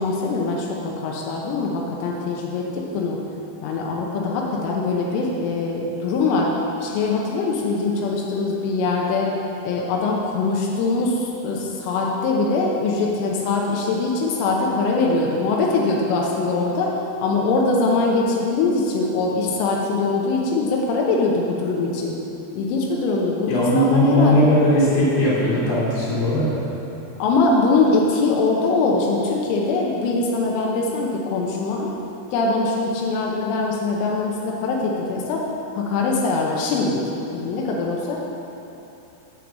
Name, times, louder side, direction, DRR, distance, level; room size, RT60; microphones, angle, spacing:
voice 1, 0.0-3.2 3.6-9.3 9.6-22.1 22.5-24.5 27.2-31.9 32.3-35.4 35.8-37.0 37.3-38.2, left 3 dB, 90° left, -2 dB, 3.4 m, -22 dB
voice 2, 23.5-26.5, left 1 dB, 55° left, -8 dB, 3.8 m, -18 dB
7.8 x 6.0 x 7.2 m, 3.0 s
omnidirectional pair, 5.6 m